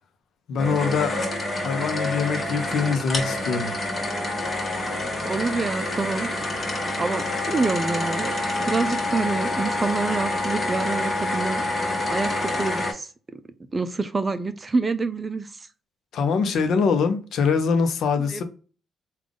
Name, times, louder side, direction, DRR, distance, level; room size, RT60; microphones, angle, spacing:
voice 1, 0.5-1.2 1.5-3.7 16.1-18.4, left 5 dB, 70° left, 0.7 m, -23 dB
sound 1, 0.6-12.9, left 2 dB, 35° left, 1.2 m, -27 dB
voice 2, 5.2-6.3 7.0-8.3 8.6-11.6 12.1-13.4 13.7-15.5 18.3-18.4, right 3 dB, 25° right, 0.4 m, -27 dB
3.6 x 2.4 x 3.6 m
cardioid pair, 90°, 0 cm